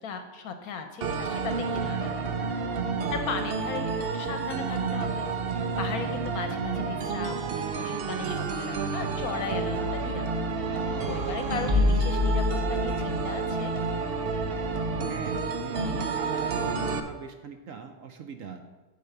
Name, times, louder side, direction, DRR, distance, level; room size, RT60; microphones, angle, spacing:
voice 1, 0.0-2.3 3.1-10.3 10.7-13.7, left 6 dB, 65° left, 7 dB, 1.1 m, -37 dB
sound 1, 1.0-17.0, right 4 dB, 80° right, 0.5 m, -30 dB
sound 2, 10.5-13.2 14.1-15.1, left 3 dB, 20° right, 0.8 m, -29 dB
voice 2, 15.1-18.6, right 6 dB, 60° right, 6 dB, 1.0 m, -42 dB
10.0 x 4.7 x 6.5 m, 1.2 s
omnidirectional pair, 1.8 m